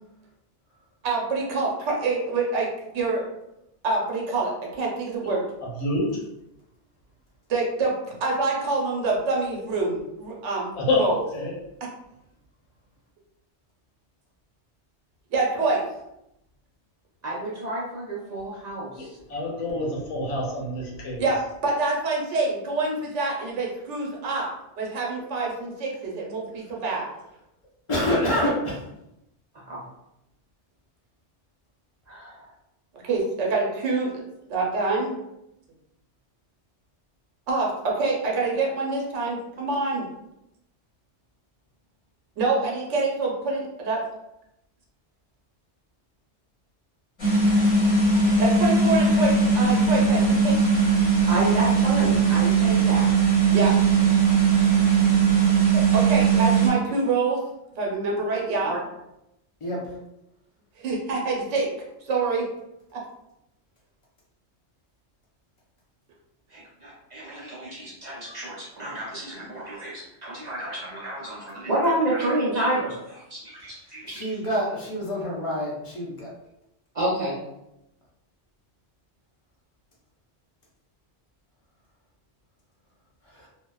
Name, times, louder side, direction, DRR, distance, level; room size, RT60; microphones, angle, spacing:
voice 1, 1.0-3.2 3.8-5.4 7.5-10.7 11.0-11.2 15.3-15.8 21.2-24.5 24.8-27.1 33.0-34.1 34.5-35.1 37.5-40.1 42.4-44.0 48.4-50.6 53.5-53.7 55.7-57.4 57.8-58.7 60.8-61.7 62.1-62.5 62.9-63.0, right 3 dB, 80° right, -2 dB, 1.0 m, -26 dB
voice 2, 5.6-6.2 10.7-11.5 19.0-21.2, left 2 dB, 80° left, -3 dB, 1.1 m, -27 dB
voice 3, 17.2-19.1 28.0-28.1 28.4-28.5 29.7-29.8 32.1-32.5 51.3-53.1 55.8-55.9 58.6-58.8 66.5-74.3 76.9-77.3, right 1 dB, 50° right, -6 dB, 0.5 m, -30 dB
voice 4, 27.9-28.8 59.6-59.9 74.0-76.3 83.3-83.5, left 1 dB, 40° left, -4 dB, 0.4 m, -27 dB
sound 1, 47.2-56.7, right 5 dB, 25° left, 0.8 m, -19 dB
2.7 x 2.1 x 2.2 m, 0.85 s
omnidirectional pair, 1.2 m